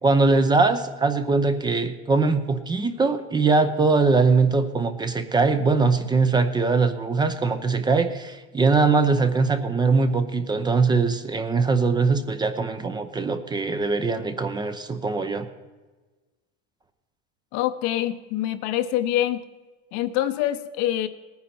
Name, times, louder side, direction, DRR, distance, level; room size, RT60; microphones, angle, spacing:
voice 1, 0.0-15.5, right 4 dB, 15° right, 9 dB, 0.7 m, -21 dB
voice 2, 17.5-19.4 19.9-21.1, left 13 dB, 60° left, 10 dB, 0.9 m, -25 dB
19.0 x 9.5 x 4.3 m, 1.3 s
supercardioid pair, 140°, 29 cm